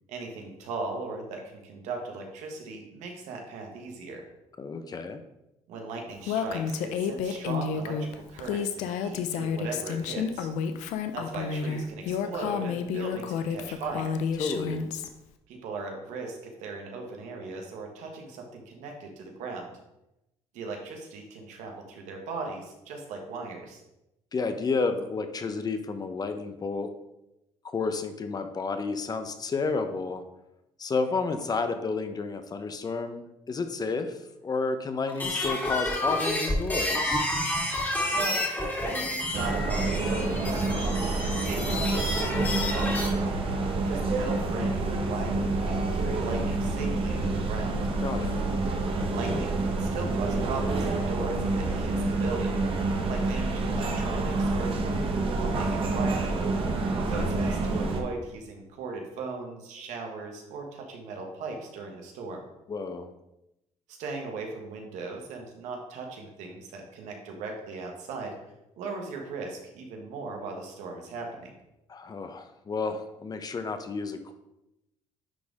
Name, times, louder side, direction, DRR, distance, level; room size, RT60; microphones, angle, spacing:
voice 1, 0.1-4.2 5.7-10.5 11.1-14.2 15.5-19.7 20.5-23.8 38.1-38.4 38.8-43.4 43.8-47.8 49.1-52.6 53.0-56.4 57.0-62.4 63.9-68.3 68.8-71.5, right 3 dB, 85° right, 2 dB, 1.5 m, -38 dB
voice 2, 4.6-5.2 14.4-14.9 24.3-26.9 27.6-30.2 30.8-37.3 48.0-48.3 62.7-63.1 71.9-74.3, left 4 dB, 35° left, 8 dB, 0.8 m, -31 dB
Female speech woman speaking, 6.3-15.1, left 6 dB, 90° left, 0.6 m, -30 dB
sound 1, 35.1-43.1, left 1 dB, 15° left, 2.2 m, -30 dB
sound 2, 39.3-58.0, right 2 dB, 50° right, 1.2 m, -28 dB
10.0 x 4.0 x 3.6 m, 0.90 s
cardioid pair, 100°, 12 cm